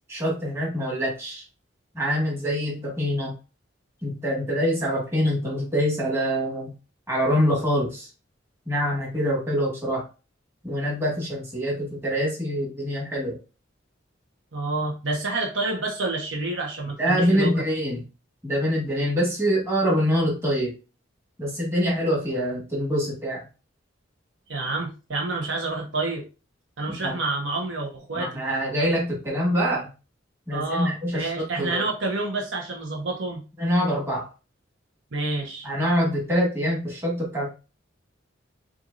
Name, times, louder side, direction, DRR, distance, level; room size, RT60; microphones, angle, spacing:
voice 1, 0.1-1.4 1.9-3.3 4.0-6.7 7.1-8.1 8.6-10.1 10.6-13.4 17.0-18.0 18.4-20.7 21.4-23.4 27.0-27.1 28.1-29.9 30.5-31.8 33.6-34.3 35.6-37.5, equal, 15° right, -4 dB, 1.7 m, -25 dB
voice 2, 14.5-17.6 24.5-26.2 26.8-28.4 30.5-33.4 35.1-35.7, right 2 dB, 70° right, 0 dB, 1.0 m, -28 dB
6.0 x 2.6 x 2.6 m, 0.32 s
head